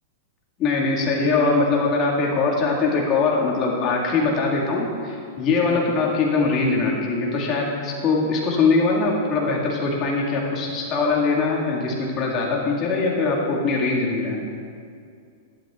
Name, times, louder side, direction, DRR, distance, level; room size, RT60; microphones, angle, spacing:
voice 1, 0.6-14.5, left 3 dB, 35° left, -3 dB, 2.0 m, -22 dB
11.5 x 11.0 x 2.5 m, 2.4 s
hypercardioid pair, 120°, 0 cm